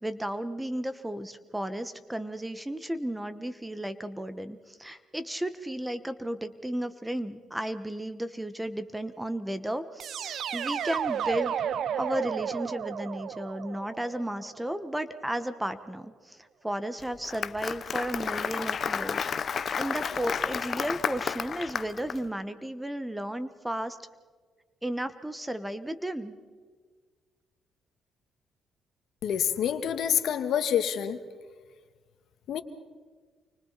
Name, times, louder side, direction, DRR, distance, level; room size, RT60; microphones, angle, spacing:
voice 1, 0.0-11.5 12.0-19.3 19.5-24.0 24.8-26.4, right 1 dB, 10° right, 11 dB, 1.4 m, -34 dB
sound 1, 10.0-14.9, right 8 dB, 65° right, 0.8 m, -33 dB
Applause, 17.0-22.2, left 6 dB, 50° left, 0.9 m, -31 dB
voice 2, 29.2-31.2 32.5-32.6, left 9 dB, 75° left, 9 dB, 1.7 m, -27 dB
29.5 x 25.0 x 4.2 m, 1.5 s
cardioid pair, 90°, 0 cm